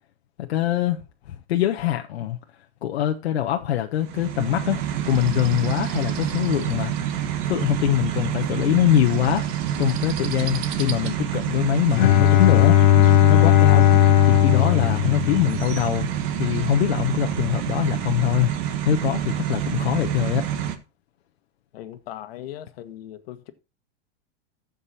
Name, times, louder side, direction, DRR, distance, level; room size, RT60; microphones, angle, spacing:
voice 1, 0.4-1.0 1.3-2.4 2.8-6.9 7.5-9.5 9.8-12.8 13.3-13.9 14.2-16.1 16.4-18.5 18.8-20.5, left 12 dB, 85° left, 1.2 m, -23 dB
sound 1, 4.0-20.8, right 10 dB, 50° right, 1.4 m, -27 dB
Bowed string instrument, 12.0-15.9, left 12 dB, 50° left, 0.6 m, -16 dB
voice 2, 21.7-23.5, left 12 dB, 70° left, 1.6 m, -38 dB
14.5 x 5.4 x 4.2 m
supercardioid pair, 150°, 31 cm